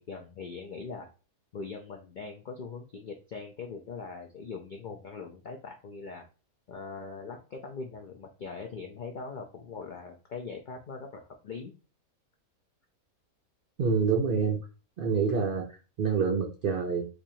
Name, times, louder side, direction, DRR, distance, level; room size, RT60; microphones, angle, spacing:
voice 1, 0.1-1.1 1.5-6.2 6.7-11.7, left 4 dB, 85° left, 2 dB, 0.4 m, -41 dB
voice 2, 13.8-14.6 15.0-17.1, right 5 dB, 75° right, 1 dB, 0.5 m, -27 dB
4.3 x 2.6 x 2.7 m, 0.33 s
omnidirectional pair, 1.5 m